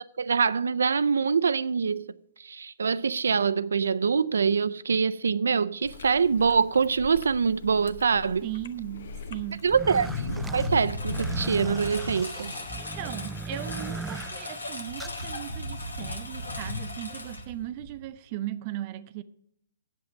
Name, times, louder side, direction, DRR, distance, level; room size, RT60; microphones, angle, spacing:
voice 1, 0.2-2.0 2.4-8.4 9.6-10.1 10.5-12.5, right 5 dB, 75° right, 0.4 m, -24 dB
Chewing mastication, 5.8-11.9, left 4 dB, 60° left, 0.8 m, -45 dB
voice 2, 8.4-9.6 12.8-19.2, right 13 dB, 40° right, 0.7 m, -37 dB
Engine, 9.3-18.1, left 1 dB, 90° left, 1.7 m, -35 dB
sound 1, 9.6-15.3, right 3 dB, 5° right, 0.3 m, -39 dB
8.1 x 7.7 x 7.4 m
figure-of-eight pair, 125°, 0 cm